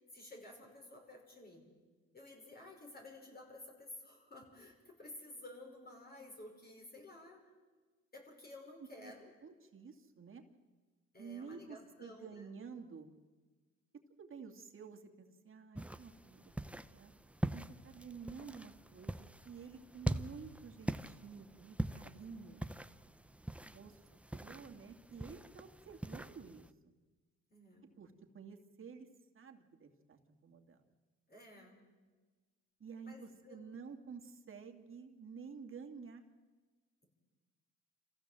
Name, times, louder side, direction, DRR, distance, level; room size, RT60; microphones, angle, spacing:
voice 1, 0.1-1.6 2.1-7.4 8.1-9.3 11.1-12.5 22.2-22.4 27.5-27.9 31.3-31.8 33.0-33.8, left 1 dB, 30° left, 1 dB, 5.9 m, -53 dB
voice 2, 8.8-9.1 9.4-10.4 11.2-13.1 14.2-17.1 17.5-19.1 19.4-22.7 23.7-24.0 24.3-26.9 28.0-29.1 29.3-30.8 32.8-36.2, right 5 dB, 45° right, 4 dB, 2.5 m, -51 dB
sound 1, 15.7-26.7, right 1 dB, 5° right, 0.7 m, -43 dB
26.5 x 15.5 x 7.8 m, 1.3 s
cardioid pair, 90°, 30 cm